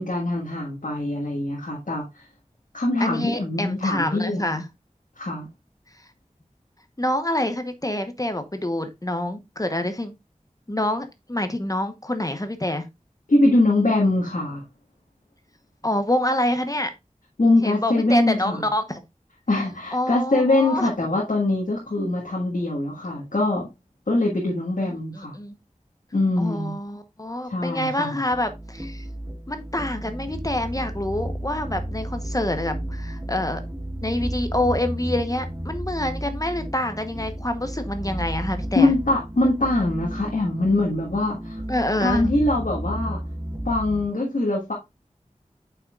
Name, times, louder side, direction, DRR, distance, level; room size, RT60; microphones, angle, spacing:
voice 1, 0.0-2.2 2.7-4.4 5.2-5.5 13.3-14.6 17.4-18.6 19.5-23.6 24.1-25.3 26.1-26.7 27.5-28.2 38.7-41.6 42.0-43.2 43.6-44.7, left 2 dB, 85° left, 1.5 m, -23 dB
voice 2, 3.0-4.6 7.0-10.1 10.7-12.9 15.8-16.9 17.6-19.0 19.9-20.9 25.2-25.5 26.4-29.0 29.5-33.6 34.0-38.9 41.7-42.4, left 1 dB, 25° left, 1.0 m, -26 dB
sound 1, 28.3-44.1, right 1 dB, 20° right, 1.1 m, -33 dB
8.0 x 5.7 x 2.4 m
wide cardioid pair, 50°, 13 cm